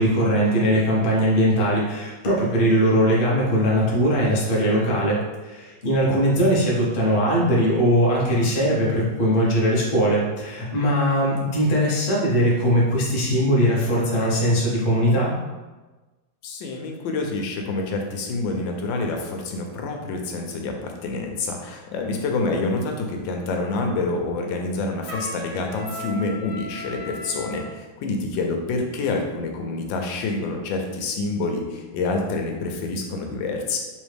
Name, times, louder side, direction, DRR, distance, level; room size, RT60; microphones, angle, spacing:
voice 1, 0.0-15.4, equal, 65° left, -4 dB, 0.5 m, -20 dB
voice 2, 6.1-6.5 16.4-33.8, left 3 dB, 80° left, 2 dB, 1.3 m, -27 dB
Trumpet, 25.1-27.6, equal, 55° right, 0.8 m, -36 dB
3.6 x 3.1 x 3.3 m, 1.2 s
omnidirectional pair, 2.1 m